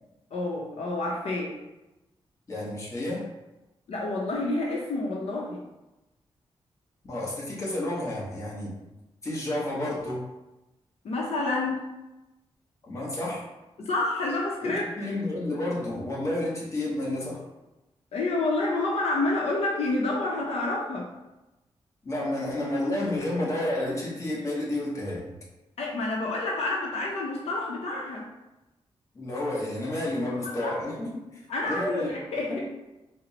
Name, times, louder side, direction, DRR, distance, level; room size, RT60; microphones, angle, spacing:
voice 1, 0.3-1.5 3.9-5.6 11.0-11.8 13.8-15.1 18.1-21.1 25.8-28.3 30.3-30.9 31.5-32.5, left 2 dB, 80° left, -2 dB, 0.6 m, -29 dB
voice 2, 2.5-3.2 7.0-8.7 9.2-10.2 12.8-13.4 14.6-17.4 22.0-25.3 29.1-32.2 32.5-32.6, left 1 dB, 30° left, -5 dB, 1.0 m, -30 dB
4.2 x 2.0 x 4.0 m, 1.0 s
wide cardioid pair, 150°, 10 cm